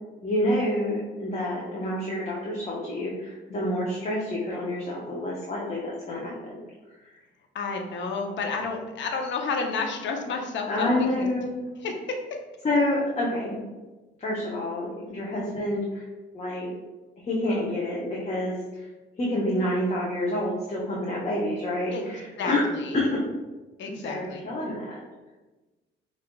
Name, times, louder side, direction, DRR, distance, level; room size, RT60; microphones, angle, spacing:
voice 1, 0.2-6.6 7.0-7.1 10.7-11.6 12.6-13.6 14.2-16.0 16.3-16.7 17.2-18.9 19.2-22.6 23.0-23.2 23.8-25.0, left 1 dB, 35° left, -5 dB, 0.8 m, -28 dB
voice 2, 7.5-11.3 11.8-12.2 15.1-15.3 21.9-22.1 22.4-23.0 23.8-24.4, left 4 dB, 65° left, 3 dB, 0.7 m, -31 dB
5.6 x 2.4 x 2.3 m, 1.2 s
cardioid pair, 90°, 20 cm